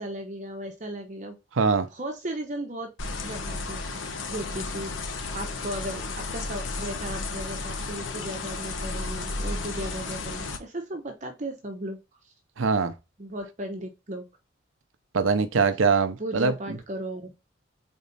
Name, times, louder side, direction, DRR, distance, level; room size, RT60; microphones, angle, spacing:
voice 1, 0.0-1.4 1.9-2.9 3.2-12.0 13.2-14.3 16.2-17.3, right 1 dB, 40° right, 0.9 m, -36 dB
voice 2, 1.6-1.9 12.6-12.9 15.1-16.5, right 4 dB, 85° right, 0.7 m, -22 dB
sound 1, 3.0-10.6, left 3 dB, 75° left, 1.0 m, -33 dB
4.4 x 4.2 x 5.3 m
head